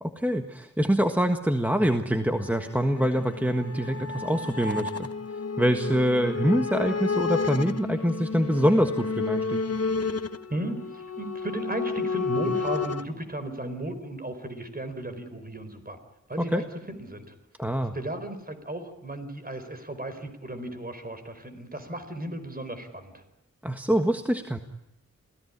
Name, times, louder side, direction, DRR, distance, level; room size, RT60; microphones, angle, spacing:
voice 1, 0.0-5.1 5.6-9.6 16.5-16.6 17.6-17.9 23.6-24.6, equal, 5° right, 5 dB, 1.6 m, -25 dB
sound 1, 2.4-13.0, left 4 dB, 55° left, 1.1 m, -31 dB
voice 2, 10.5-16.0 16.3-17.3 17.9-23.2, right 1 dB, 30° right, 9 dB, 4.6 m, -35 dB
28.0 x 17.5 x 9.9 m, 0.88 s
wide cardioid pair, 75°, 29 cm